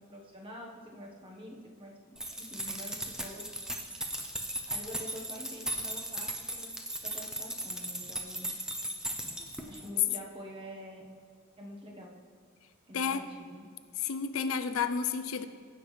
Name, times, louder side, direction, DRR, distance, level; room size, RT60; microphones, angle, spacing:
voice 1, 0.0-1.9 2.4-3.5 4.7-6.7 7.0-8.5 9.7-11.0 11.6-12.1 12.9-13.7, equal, 25° right, -1 dB, 1.2 m, -46 dB
sound 1, 2.2-9.9, right 1 dB, 5° right, 0.6 m, -37 dB
voice 2, 12.9-13.3 14.0-15.5, left 6 dB, 85° left, 9 dB, 0.5 m, -31 dB
16.0 x 5.8 x 3.2 m, 2.1 s
head